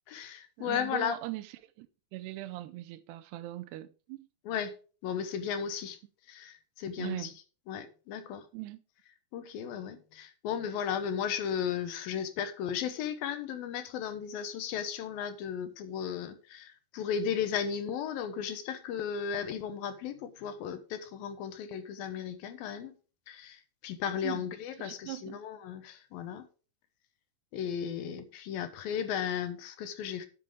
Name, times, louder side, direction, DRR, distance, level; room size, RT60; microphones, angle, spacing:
voice 1, 0.1-1.2 4.5-4.8 5.0-6.0 6.3-7.3 7.7-8.5 9.3-23.0 23.3-26.5 27.5-30.3, left 8 dB, 70° left, 2.6 m, -35 dB
voice 2, 0.6-1.9 2.1-4.3 7.0-7.3 8.5-8.8 24.2-24.5 24.8-25.4, right 16 dB, 90° right, 2.8 m, -40 dB
11.5 x 7.6 x 3.7 m
omnidirectional pair, 4.6 m